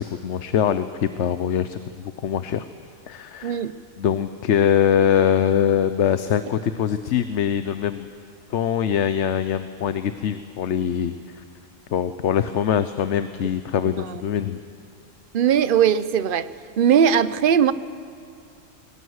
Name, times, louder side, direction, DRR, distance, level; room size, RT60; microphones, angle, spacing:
voice 1, 0.0-2.7 3.1-3.6 4.0-8.1 8.5-11.4 11.9-14.6, left 9 dB, 65° left, 11 dB, 1.0 m, -23 dB
voice 2, 3.4-3.7 14.1-14.2 15.3-16.5 16.8-17.7, right 8 dB, 50° right, 14 dB, 0.8 m, -19 dB
22.5 x 19.5 x 9.5 m, 2.4 s
omnidirectional pair, 1.4 m